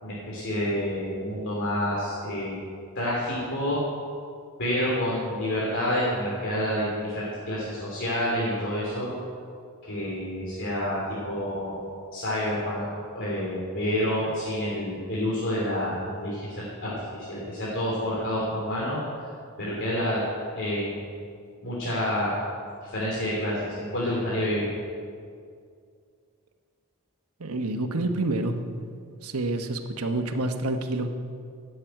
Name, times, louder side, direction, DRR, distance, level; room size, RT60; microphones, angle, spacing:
voice 1, 0.0-2.6 2.9-3.8 4.6-9.1 9.9-11.8 12.1-12.9 13.1-19.0 19.6-20.2 20.5-21.1 21.6-22.3 22.8-24.7, equal, 55° left, -6 dB, 3.1 m, -28 dB
voice 2, 27.4-28.6 29.2-31.1, right 2 dB, 80° right, 5 dB, 1.2 m, -28 dB
13.5 x 7.9 x 9.1 m, 2.3 s
head